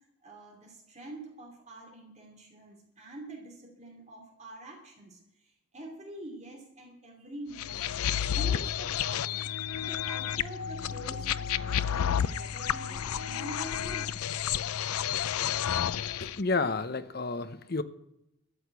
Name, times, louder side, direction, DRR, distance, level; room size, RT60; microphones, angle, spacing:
voice 1, 0.2-7.9 8.3-9.5 9.9-14.1, right 1 dB, 30° right, 0 dB, 2.7 m, -46 dB
sound 1, 7.6-16.4, left 9 dB, 90° left, 0.5 m, -31 dB
voice 2, 16.2-17.8, left 3 dB, 45° left, 11 dB, 0.8 m, -30 dB
13.0 x 7.9 x 8.3 m, 0.83 s
head